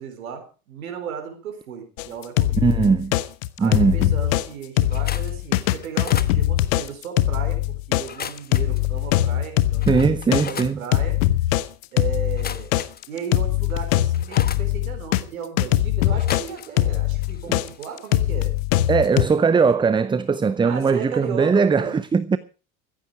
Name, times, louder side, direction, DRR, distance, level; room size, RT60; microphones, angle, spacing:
voice 1, 0.0-2.9 3.6-7.6 7.9-11.2 11.9-12.7 13.1-18.5 20.6-22.0, right 7 dB, 70° right, 4.1 m, -35 dB
sound 1, 2.0-4.5 4.8-15.2 15.6-19.3, left 15 dB, 60° left, 1.2 m, -21 dB
voice 2, 2.6-3.1 3.6-4.1 9.9-10.8 17.5-17.6 18.9-22.4, right 5 dB, 10° right, 0.6 m, -20 dB
sound 2, 4.8-5.4 5.8-6.4 8.0-8.8 9.4-9.5 9.8-10.7 12.3-13.3 13.7-14.7 16.1-16.9 17.2-18.8 19.1-19.3 19.6-19.7, left 7 dB, 20° left, 1.2 m, -37 dB
15.5 x 14.5 x 4.8 m
figure-of-eight pair, 65°, 44 cm